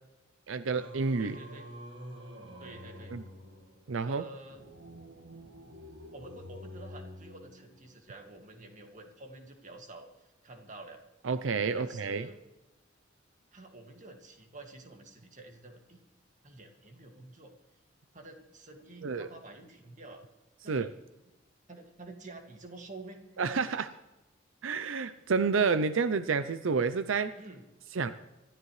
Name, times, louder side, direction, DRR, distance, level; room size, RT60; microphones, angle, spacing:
voice 1, 0.5-1.4 3.1-3.2 3.9-4.2 11.2-12.3 19.0-19.3 20.7-20.9 23.4-23.9 24.6-27.3 27.9-28.1, right 5 dB, 85° right, 12 dB, 0.6 m, -29 dB
Singing, 0.7-8.1, equal, 65° right, 1.7 m, -48 dB
voice 2, 1.2-1.7 2.6-3.1 4.0-4.6 6.1-11.0 11.7-12.4 13.5-16.0 16.4-17.5 18.1-20.2 20.6-20.9 21.7-23.4 27.4-27.6, right 2 dB, 40° right, 3 dB, 2.1 m, -49 dB
25.5 x 13.0 x 3.2 m, 1.0 s
head